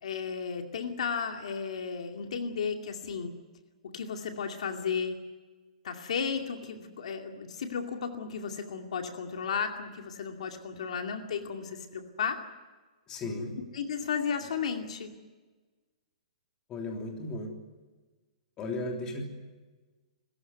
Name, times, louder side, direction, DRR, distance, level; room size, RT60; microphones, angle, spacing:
voice 1, 0.0-3.3 3.8-5.2 5.8-12.4 13.7-15.1, left 6 dB, 65° left, 4 dB, 2.5 m, -34 dB
voice 2, 13.1-13.5 16.7-17.5 18.6-19.4, left 2 dB, 15° left, 1 dB, 3.3 m, -35 dB
27.0 x 15.0 x 9.4 m, 1.3 s
hypercardioid pair, 165°, 4 cm